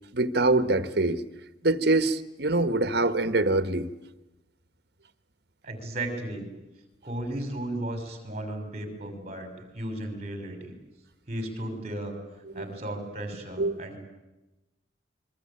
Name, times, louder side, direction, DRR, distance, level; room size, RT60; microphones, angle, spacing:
voice 1, 0.1-1.2 1.6-3.9 12.5-12.6 13.6-13.8, right 2 dB, 60° right, 12 dB, 1.5 m, -24 dB
voice 2, 5.6-6.4 7.0-10.7 11.3-12.2 12.5-14.0, right 1 dB, 35° right, 6 dB, 6.0 m, -35 dB
28.0 x 23.0 x 8.9 m, 1.0 s
head